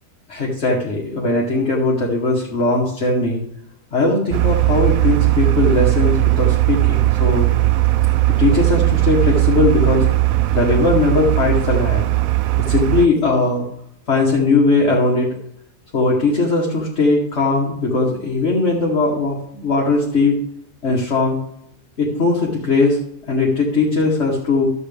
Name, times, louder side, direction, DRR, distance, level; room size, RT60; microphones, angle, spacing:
voice 1, 0.3-3.4 3.9-7.5 8.4-10.1 10.5-12.1 12.6-13.6 14.1-15.4 15.9-20.4 20.8-21.4 22.0-23.0 23.3-24.7, left 3 dB, 45° left, -3 dB, 1.6 m, -19 dB
sound 1, 4.3-13.1, right 18 dB, 70° right, 0.9 m, -17 dB
11.5 x 7.9 x 3.5 m, 0.75 s
omnidirectional pair, 1.7 m